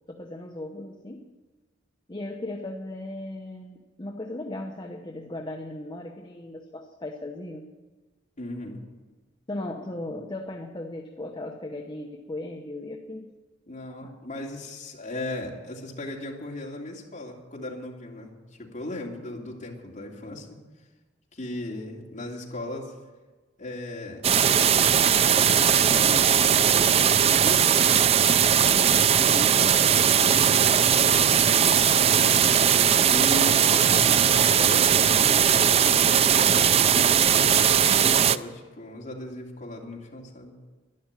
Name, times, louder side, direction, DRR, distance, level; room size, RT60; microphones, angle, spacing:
voice 1, 0.1-1.3 2.1-7.7 9.5-13.3 14.0-14.2 28.6-29.0 33.5-33.8, left 1 dB, 25° left, 2 dB, 0.9 m, -37 dB
voice 2, 8.4-8.8 13.7-20.5 21.3-22.9 23.6-24.2 24.7-27.8 29.1-32.5 33.1-35.7 36.8-40.6, left 1 dB, 40° left, -2 dB, 2.9 m, -37 dB
sound 1, 24.2-38.4, right 8 dB, 35° right, 0.4 m, -19 dB
12.0 x 11.5 x 9.0 m, 1.3 s
head